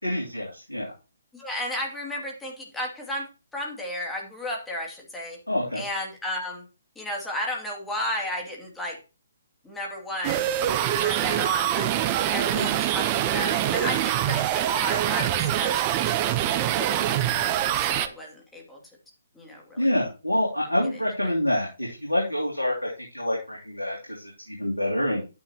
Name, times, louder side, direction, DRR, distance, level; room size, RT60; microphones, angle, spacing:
voice 1, 0.0-0.9 5.5-5.8 12.5-12.7 19.8-25.2, left 1 dB, 85° left, -2 dB, 3.0 m, -27 dB
voice 2, 1.3-3.3 3.5-5.4 5.8-6.6 7.0-9.0 9.6-10.5 11.0-11.9 12.3-16.2 16.7-18.8 19.3-19.9, left 1 dB, 5° left, -1 dB, 2.6 m, -33 dB
sound 1, 10.2-18.1, right 12 dB, 25° right, 0.8 m, -24 dB
11.0 x 9.5 x 3.0 m, 0.31 s
figure-of-eight pair, 135°, 0 cm